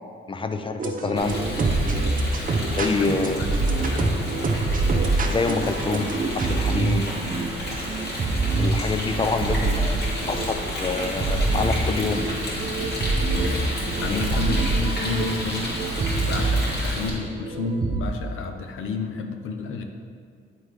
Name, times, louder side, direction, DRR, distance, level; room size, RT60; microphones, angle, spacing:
voice 1, 0.3-1.4 2.8-3.4 5.3-7.1 8.6-10.0 10.3-12.2 14.1-14.4, left 3 dB, 25° left, 8 dB, 0.6 m, -26 dB
sound 1, 0.8-18.0, right 3 dB, 40° right, 0.8 m, -26 dB
Rain, 1.2-17.1, equal, 55° left, 2.0 m, -31 dB
voice 2, 3.8-4.1 13.3-13.7 14.0-15.7 16.1-19.8, left 4 dB, 75° left, 5 dB, 0.7 m, -30 dB
sound 2, 9.1-10.3 11.4-12.3 13.7-14.8 16.0-16.9, right 3 dB, 60° right, 1.2 m, -38 dB
9.7 x 3.9 x 4.8 m, 2.1 s
cardioid pair, 85°, 21 cm